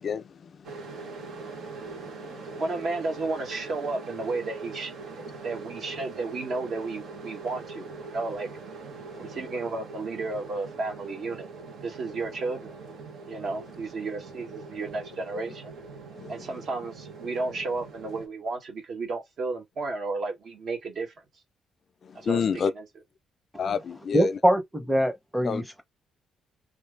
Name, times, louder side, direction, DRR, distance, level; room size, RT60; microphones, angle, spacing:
voice 1, 0.0-2.6 9.1-9.4 16.2-16.6 22.0-22.7 23.6-24.4 25.4-25.6, left 6 dB, 50° left, 0.4 m, -32 dB
sound 1, 0.6-18.3, right 4 dB, 75° right, 1.4 m, -42 dB
voice 2, 2.6-4.9 5.3-8.5 9.2-11.5 11.8-12.7 13.3-15.7 16.3-21.1 22.1-22.4 22.8-22.9, right 3 dB, 60° right, 1.4 m, -33 dB
voice 3, 24.1-25.8, equal, 5° right, 0.8 m, -23 dB
3.2 x 2.6 x 3.4 m
cardioid pair, 90°, 0 cm